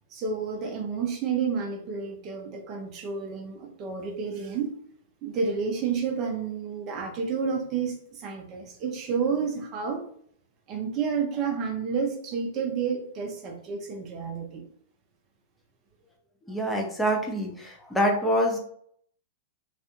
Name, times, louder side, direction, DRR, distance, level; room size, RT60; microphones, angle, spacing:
voice 1, 0.1-4.7 5.2-10.0 10.7-14.6, right 6 dB, 35° right, 2 dB, 0.6 m, -30 dB
voice 2, 16.5-18.6, equal, 5° left, 0 dB, 0.6 m, -25 dB
2.4 x 2.2 x 2.9 m, 0.63 s
hypercardioid pair, 110°, 0 cm